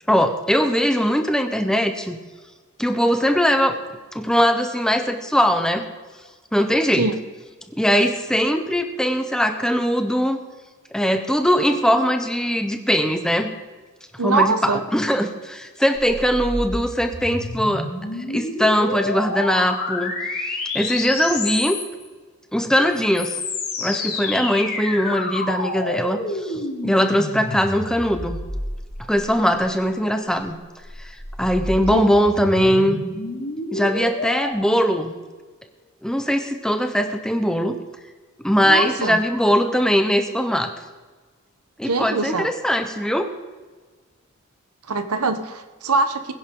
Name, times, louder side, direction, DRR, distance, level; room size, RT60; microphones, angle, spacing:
voice 1, 0.1-2.2 2.8-3.8 4.1-5.9 6.5-7.1 7.7-10.4 10.9-13.5 14.2-17.9 18.3-20.1 20.7-21.8 22.5-23.4 23.8-28.4 29.1-30.5 31.0-33.0 33.7-35.1 36.0-37.8 38.4-40.7 41.8-43.3, equal, 5° left, 7 dB, 0.9 m, -20 dB
voice 2, 14.2-14.8 31.9-32.1 38.6-39.2 41.8-42.5 44.9-46.3, right 3 dB, 90° right, 9 dB, 1.1 m, -22 dB
sound 1, 16.0-22.1 22.9-29.5 30.6-34.5, left 2 dB, 45° left, 3.5 m, -29 dB
21.5 x 10.5 x 3.9 m, 1.4 s
head